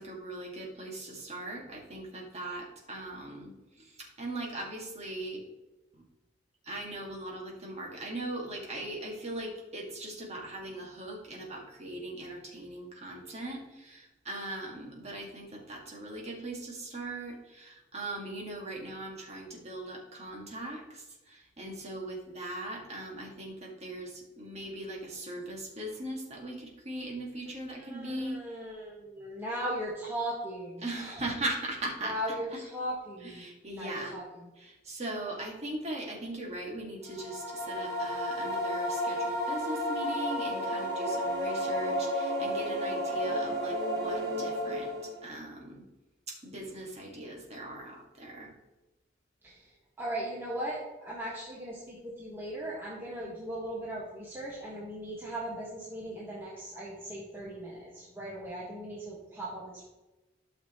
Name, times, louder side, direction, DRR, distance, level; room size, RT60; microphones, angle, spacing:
voice 1, 0.0-5.4 6.6-28.4 30.8-32.1 32.5-32.6 33.2-34.2 34.6-45.8 46.3-48.5, right 1 dB, 35° right, -1 dB, 2.0 m, -39 dB
voice 2, 27.7-31.3 32.0-34.5 49.4-59.9, right 1 dB, 10° right, -6 dB, 1.6 m, -38 dB
sound 1, 37.1-45.3, equal, 50° right, 2.6 m, -32 dB
12.5 x 6.6 x 3.1 m, 1.1 s
head